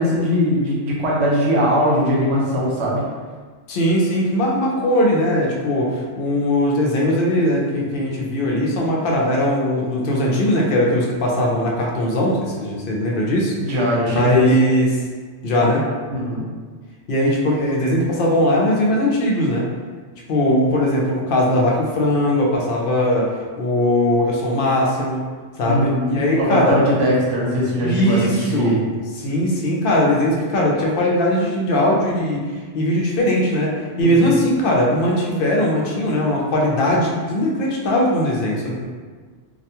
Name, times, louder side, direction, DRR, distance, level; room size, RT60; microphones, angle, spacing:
voice 1, 0.0-3.0 13.6-14.5 16.1-16.4 25.6-28.8 34.0-34.3, equal, 70° right, -5 dB, 0.9 m, -20 dB
voice 2, 3.7-13.5 14.1-14.9 15.4-15.8 17.1-19.7 20.3-23.3 23.6-25.2 25.6-26.8 27.8-32.4 32.7-33.7 34.0-38.9, left 1 dB, 60° left, -2 dB, 0.6 m, -19 dB
2.4 x 2.2 x 2.8 m, 1.5 s
omnidirectional pair, 1.2 m